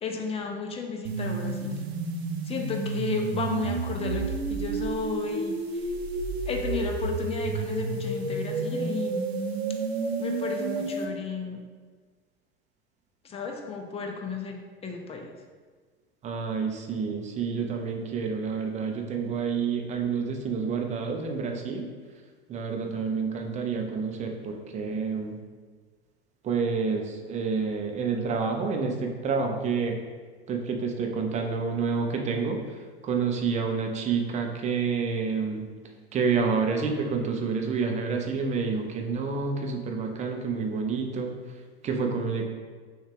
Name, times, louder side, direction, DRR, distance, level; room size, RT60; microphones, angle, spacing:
voice 1, 0.0-1.7 2.5-4.2 4.5-5.5 6.5-9.3 10.2-11.6 13.2-15.3, left 4 dB, 20° left, 3 dB, 0.6 m, -33 dB
sound 1, 1.0-11.0, right 3 dB, 75° right, 0.7 m, -30 dB
voice 2, 16.2-21.9 22.5-25.4 26.4-30.0 30.5-32.6 33.0-35.7 36.1-41.3 41.8-42.4, right 5 dB, 20° right, 3 dB, 0.6 m, -28 dB
6.2 x 2.4 x 3.6 m, 1.5 s
figure-of-eight pair, 85°, 32 cm